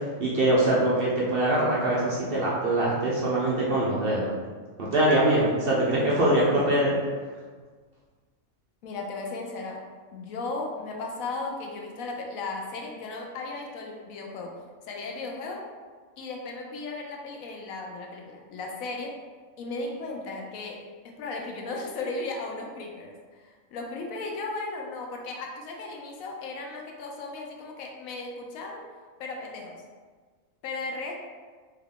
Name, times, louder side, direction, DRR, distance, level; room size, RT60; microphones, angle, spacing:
voice 1, 0.2-4.3 4.9-7.0, right 1 dB, 55° right, -5 dB, 0.7 m, -23 dB
voice 2, 8.8-9.8 10.1-14.6 14.8-15.6 16.2-19.2 19.6-20.8 21.2-28.8 29.2-29.8 30.6-31.1, left 3 dB, 80° left, 0 dB, 1.0 m, -36 dB
3.6 x 2.3 x 3.5 m, 1.5 s
omnidirectional pair, 1.5 m